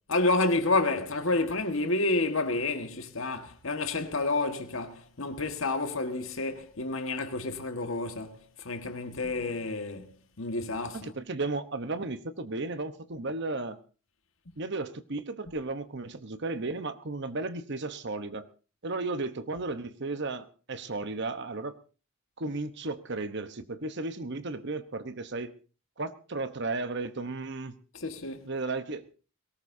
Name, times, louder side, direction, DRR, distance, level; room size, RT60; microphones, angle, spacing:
voice 1, 0.1-11.1 27.9-28.5, left 2 dB, 70° left, 1.7 m, -29 dB
voice 2, 10.9-13.8 14.6-18.5 18.8-21.7 22.4-25.5 26.0-27.8 28.5-29.0, right 3 dB, 55° right, 1.1 m, -34 dB
22.0 x 18.0 x 2.8 m
head